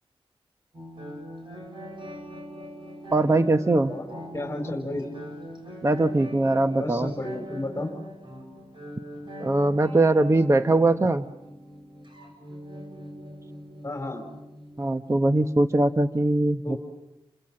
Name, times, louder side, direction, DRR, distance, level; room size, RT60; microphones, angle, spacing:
sound 1, 0.7-16.2, equal, 55° right, 7.9 m, -42 dB
voice 1, 3.1-4.0 5.8-7.1 9.4-11.3 14.8-16.8, right 2 dB, 30° right, 9 dB, 1.0 m, -21 dB
voice 2, 4.3-5.1 6.8-7.9 13.8-14.2 16.6-16.8, left 1 dB, 25° left, 2 dB, 4.8 m, -32 dB
30.0 x 25.0 x 7.7 m, 0.92 s
wide cardioid pair, 70°, 10 cm